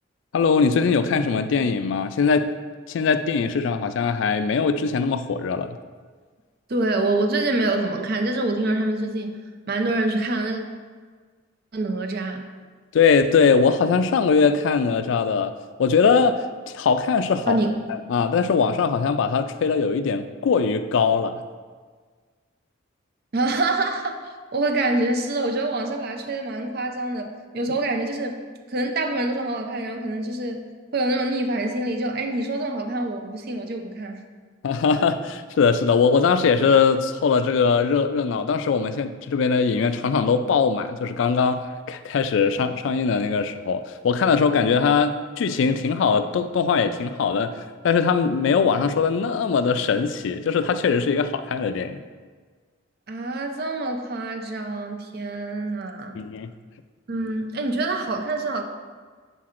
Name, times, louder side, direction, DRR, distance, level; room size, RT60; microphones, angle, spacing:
voice 1, 0.3-2.5 2.9-5.8 12.9-15.5 15.8-17.6 18.1-21.4 34.6-47.5 47.8-52.0 56.1-56.5, left 5 dB, 65° left, 11 dB, 0.3 m, -21 dB
voice 2, 6.7-9.4 9.7-10.6 11.7-12.4 17.5-17.7 23.3-24.1 24.5-28.4 28.7-30.6 30.9-34.2 53.1-56.2 57.1-58.6, right 2 dB, 50° right, 4 dB, 0.5 m, -26 dB
6.7 x 5.8 x 2.5 m, 1.5 s
head